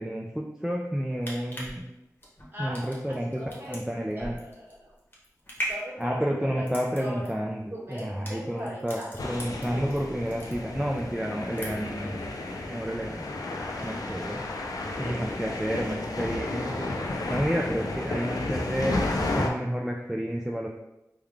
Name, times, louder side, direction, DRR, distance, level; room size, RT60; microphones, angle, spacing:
voice 1, 0.0-1.9 2.6-3.4 3.7-4.4 6.0-7.6 7.9-12.2 12.7-13.2 13.5-14.4 15.0-16.9 17.3-20.7, equal, 10° right, -1 dB, 0.4 m, -30 dB
sound 1, 1.0-10.0 10.3-11.0 11.3-12.0 12.4-12.5, equal, 30° left, 1.1 m, -39 dB
voice 2, 2.5-4.9 5.6-7.3 7.7-9.1 9.7-9.9 13.8-16.0, equal, 30° right, -5 dB, 1.5 m, -41 dB
sound 2, 9.2-19.5, left 2 dB, 75° left, 0.5 m, -32 dB
3.6 x 2.3 x 3.2 m, 0.92 s
wide cardioid pair, 55°, 6 cm